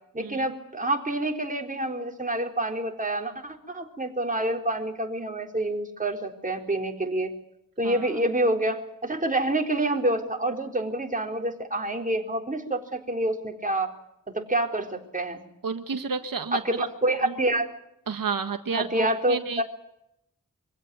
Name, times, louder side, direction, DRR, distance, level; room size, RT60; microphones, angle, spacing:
voice 1, 0.1-7.3 7.8-13.9 14.3-15.4 16.6-17.7 18.7-19.6, right 1 dB, 25° right, 3 dB, 4.0 m, -27 dB
voice 2, 7.8-8.2 15.6-16.9 17.2-17.4 18.1-19.6, right 5 dB, 80° right, 7 dB, 1.6 m, -31 dB
25.5 x 16.5 x 9.4 m, 0.80 s
wide cardioid pair, 85°, 33 cm